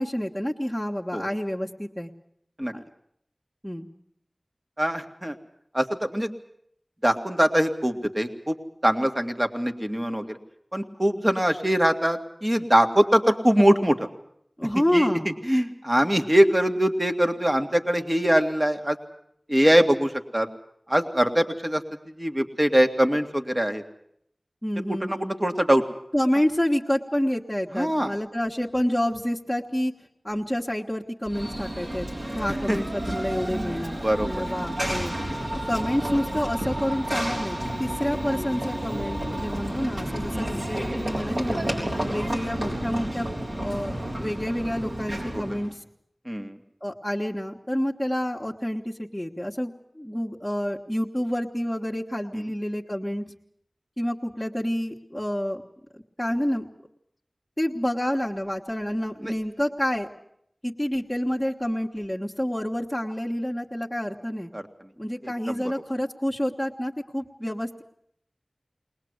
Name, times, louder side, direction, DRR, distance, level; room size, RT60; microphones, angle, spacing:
voice 1, 0.0-2.1 2.7-2.8 3.6-3.9 14.6-15.3 24.6-25.3 26.1-29.9 30.2-35.1 35.7-41.6 42.1-43.3 43.5-45.8 46.8-53.2 54.0-55.6 55.9-56.7 57.6-60.1 60.6-64.5 65.0-67.8, equal, 10° left, -4 dB, 1.6 m, -28 dB
voice 2, 4.8-5.4 5.7-6.3 7.0-8.6 8.8-10.4 10.7-14.1 14.9-15.1 15.5-19.0 19.5-20.5 20.9-21.8 22.2-23.8 24.9-25.8 27.7-28.1 32.7-32.8 34.0-34.4 40.3-40.5 46.3-46.6 52.3-52.5 59.2-59.3 64.5-64.6 65.5-65.6, equal, 25° right, 6 dB, 2.1 m, -22 dB
Run / Train, 31.3-45.7, right 1 dB, 70° right, 5.8 m, -31 dB
21.5 x 20.0 x 8.1 m, 0.70 s
wide cardioid pair, 40°, 0 cm